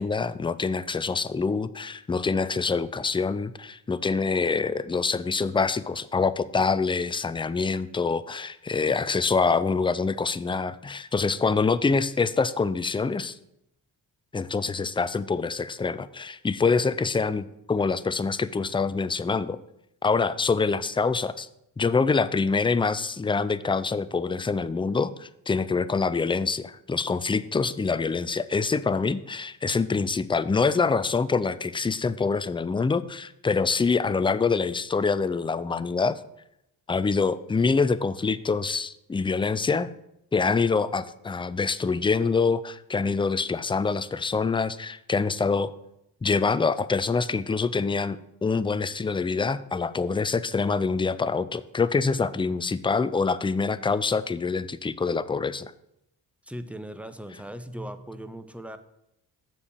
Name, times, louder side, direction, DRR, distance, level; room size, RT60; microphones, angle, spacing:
voice 1, 0.0-13.4 14.3-19.6 20.0-21.5 21.8-36.2 36.9-39.9 40.3-45.7 46.2-55.7, left 4 dB, 10° left, 15 dB, 0.4 m, -25 dB
voice 2, 56.4-58.8, right 1 dB, 5° right, 10 dB, 0.8 m, -38 dB
6.9 x 4.7 x 6.6 m, 0.81 s
supercardioid pair, 50°, 42 cm